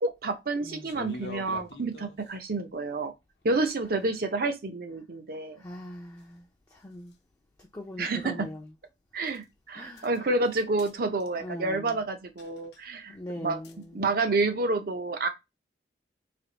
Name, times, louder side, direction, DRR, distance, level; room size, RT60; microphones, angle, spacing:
voice 1, 0.0-3.1 3.4-5.6 8.0-8.5 9.1-13.6 13.9-15.3, right 3 dB, 55° right, 0.6 m, -29 dB
voice 2, 0.6-0.9 5.6-7.1 7.6-8.7 9.8-10.2 11.4-12.0 13.1-14.0, left 1 dB, 20° left, 0.4 m, -41 dB
sound 1, 0.8-2.3 6.2-6.3 7.1-7.2 9.3-9.4 10.0-10.2 10.5-10.9 11.2-11.4 12.4-12.8 13.6-13.8, left 2 dB, 70° left, 0.7 m, -43 dB
3.4 x 2.4 x 3.9 m
head